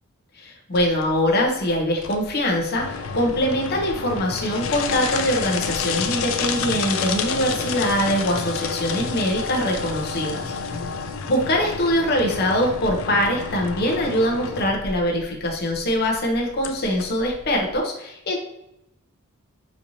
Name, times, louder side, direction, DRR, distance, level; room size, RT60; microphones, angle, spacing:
voice 1, 0.4-10.5 11.3-18.4, equal, 50° left, 0 dB, 0.8 m, -23 dB
sound 1, 0.7-17.8, left 5 dB, 65° left, 0.4 m, -30 dB
4.3 x 2.8 x 2.7 m, 0.84 s
head